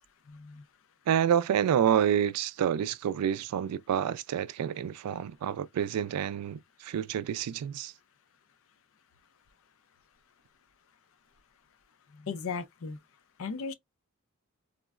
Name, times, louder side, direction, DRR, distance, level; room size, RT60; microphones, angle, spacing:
voice 1, 0.3-0.6 12.1-13.0 13.4-13.7, left 5 dB, 60° left, 0.5 m, -36 dB
voice 2, 1.1-7.9, right 9 dB, 85° right, 0.3 m, -28 dB
3.7 x 2.0 x 2.3 m
head